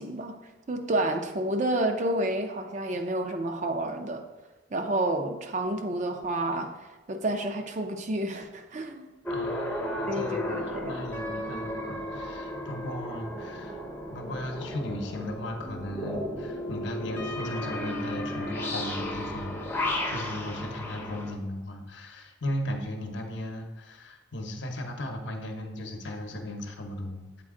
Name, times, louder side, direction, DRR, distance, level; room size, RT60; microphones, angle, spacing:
voice 1, 0.0-4.3 4.7-6.7 7.1-9.1 10.1-11.0, right 1 dB, 40° right, 6 dB, 0.5 m, -30 dB
sound 1, 9.2-21.3, left 1 dB, 10° left, 0.7 m, -34 dB
voice 2, 9.3-13.8 14.1-27.4, left 1 dB, 70° left, 3 dB, 0.8 m, -36 dB
7.5 x 4.2 x 3.7 m, 1.1 s
head